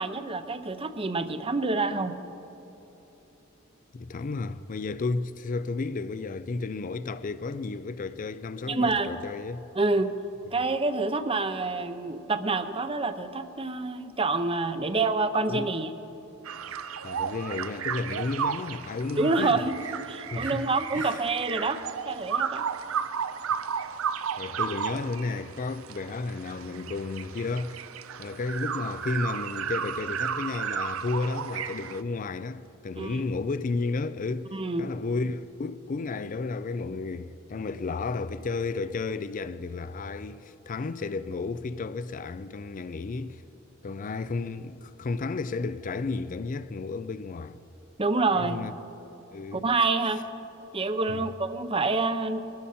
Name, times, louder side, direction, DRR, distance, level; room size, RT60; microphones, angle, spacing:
voice 1, 0.0-2.1 8.7-9.2 9.7-10.1 10.5-15.9 19.2-19.7 20.1-22.7 33.0-33.3 34.5-34.9 48.0-48.6 49.5-50.2 50.7-52.4, right 3 dB, 25° right, 0.7 m, -27 dB
voice 2, 3.9-9.6 15.5-15.7 17.0-19.7 20.3-21.2 24.3-27.8 28.2-34.5 34.8-43.4 43.8-47.6 48.3-48.8 49.3-49.6 51.1-51.3, left 3 dB, 40° left, 0.4 m, -32 dB
sound 1, 16.4-32.0, right 7 dB, 85° right, 0.5 m, -33 dB
23.0 x 12.5 x 4.3 m
head